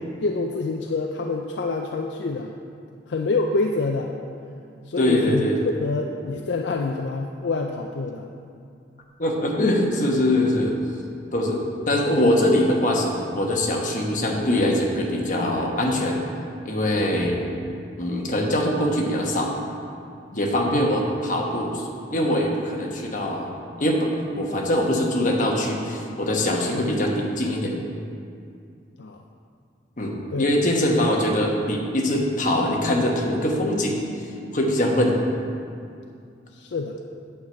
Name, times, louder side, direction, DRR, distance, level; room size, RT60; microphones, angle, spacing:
voice 1, 0.2-2.5 3.1-4.2 4.9-5.5 5.8-8.3 20.7-20.9 29.0-29.2 30.3-30.5 36.5-37.0, left 3 dB, 70° left, 2 dB, 0.5 m, -27 dB
voice 2, 5.0-5.6 9.2-10.7 11.3-16.2 16.6-17.4 18.0-19.5 20.3-21.8 22.1-23.5 23.8-27.7 30.0-34.0 34.5-35.2, left 1 dB, 45° left, -1 dB, 1.2 m, -22 dB
8.8 x 4.8 x 7.0 m, 2.4 s
head